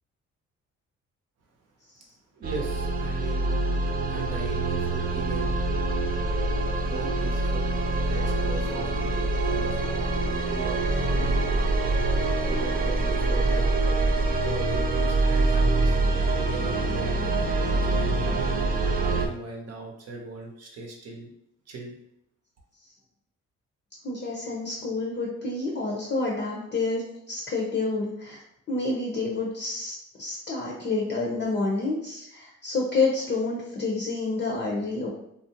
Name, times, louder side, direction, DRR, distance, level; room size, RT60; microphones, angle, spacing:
voice 1, 2.3-3.6 4.1-5.6 6.8-7.8 8.0-11.4 12.5-13.7 14.4-18.5 18.8-21.3 21.7-21.9, right 4 dB, 55° right, 0 dB, 0.8 m, -39 dB
sound 1, 2.4-19.3, right 2 dB, 30° right, 0.4 m, -25 dB
voice 2, 24.0-28.4 28.7-35.1, left 3 dB, 35° left, -3 dB, 0.6 m, -29 dB
2.5 x 2.0 x 2.8 m, 0.75 s
cardioid pair, 90°, 30 cm